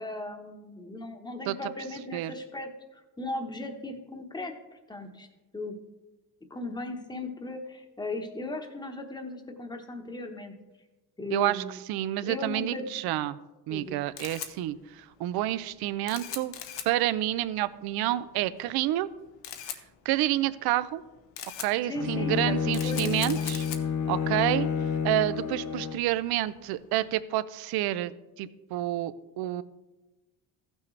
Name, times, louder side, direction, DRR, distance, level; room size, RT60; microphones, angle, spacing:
voice 1, 0.0-5.3 5.5-5.7 6.5-10.5 11.2-11.8 12.2-12.8 13.7-14.0 21.8-22.6 22.8-23.5, left 2 dB, 10° left, 4 dB, 1.1 m, -37 dB
voice 2, 11.3-11.6 11.9-13.4 13.7-16.5 16.9-19.1 20.0-21.0 21.6-23.7 24.1-24.7 25.0-28.1 28.4-29.6, right 14 dB, 60° right, 15 dB, 0.5 m, -29 dB
Camera, 13.8-27.1, left 10 dB, 80° left, 1.0 m, -43 dB
Bowed string instrument, 21.9-26.2, left 6 dB, 45° left, 0.6 m, -29 dB
14.5 x 6.2 x 3.3 m, 1.1 s
cardioid pair, 110°, 43 cm